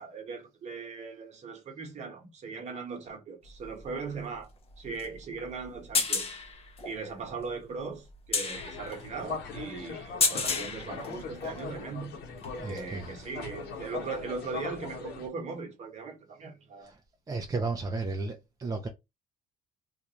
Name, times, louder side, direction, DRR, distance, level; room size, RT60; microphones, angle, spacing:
voice 1, 0.0-4.5 4.8-6.4 6.8-12.1 12.7-16.9, right 4 dB, 45° right, 1.1 m, -39 dB
sound 1, 3.4-11.7 12.2-13.0 14.3-14.4, left 4 dB, 35° left, 0.7 m, -33 dB
sound 2, 8.5-15.3, left 5 dB, 75° left, 1.0 m, -40 dB
voice 2, 12.6-13.1 17.3-18.9, right 3 dB, 20° right, 0.4 m, -33 dB
2.4 x 2.3 x 2.9 m
cardioid pair, 110°, 17 cm